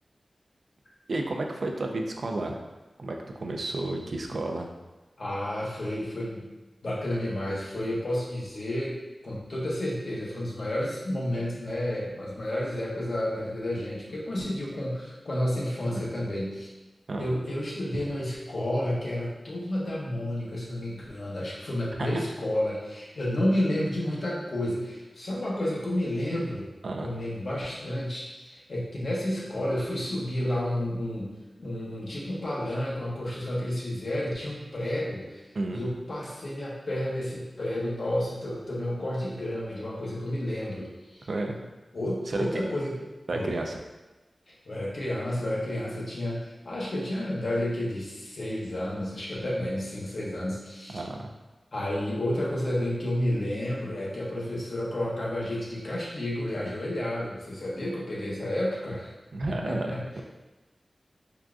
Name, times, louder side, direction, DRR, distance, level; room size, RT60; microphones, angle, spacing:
voice 1, 1.1-2.6 3.0-4.7 15.9-16.1 17.1-17.3 22.0-22.2 26.8-27.1 35.5-35.8 41.3-41.6 42.3-42.7 43.3-43.8 50.9-51.3 59.3-60.2, right 2 dB, 75° right, 2 dB, 0.3 m, -32 dB
voice 2, 5.2-6.4 6.8-9.0 9.2-16.7 17.2-26.7 27.0-41.3 41.9-43.0 43.3-43.6 44.5-51.0 51.7-59.1 59.4-60.2, left 1 dB, 70° left, -5 dB, 0.8 m, -31 dB
3.8 x 2.3 x 2.3 m, 1.1 s
wide cardioid pair, 65°, 0 cm